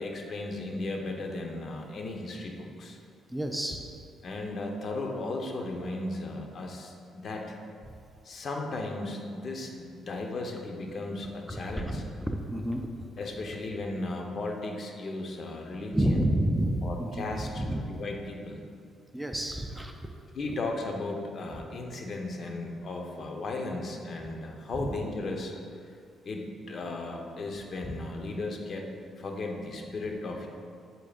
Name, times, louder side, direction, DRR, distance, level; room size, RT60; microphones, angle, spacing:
voice 1, 0.0-3.0 4.2-7.5 8.2-12.0 13.2-16.2 16.8-18.6 20.3-25.5 25.8-25.9 26.2-28.9 29.2-30.5, left 2 dB, 50° left, 2 dB, 1.0 m, -36 dB
voice 2, 3.3-3.8 11.5-13.1 15.9-17.9 19.1-19.9 24.8-24.9 27.8-28.0, right 1 dB, 5° right, 3 dB, 0.5 m, -30 dB
8.6 x 7.5 x 2.5 m, 2.3 s
cardioid pair, 90°, 0 cm